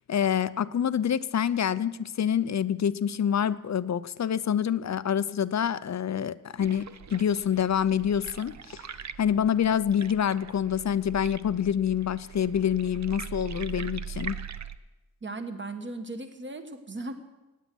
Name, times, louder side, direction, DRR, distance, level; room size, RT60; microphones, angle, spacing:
voice 1, 0.1-14.4, left 8 dB, 55° left, 16 dB, 0.5 m, -27 dB
sound 1, 6.6-14.8, right 7 dB, 55° right, 0.6 m, -41 dB
voice 2, 15.2-17.1, right 2 dB, 35° right, 7 dB, 1.3 m, -37 dB
16.5 x 9.2 x 6.1 m, 1.1 s
wide cardioid pair, 115°, 34 cm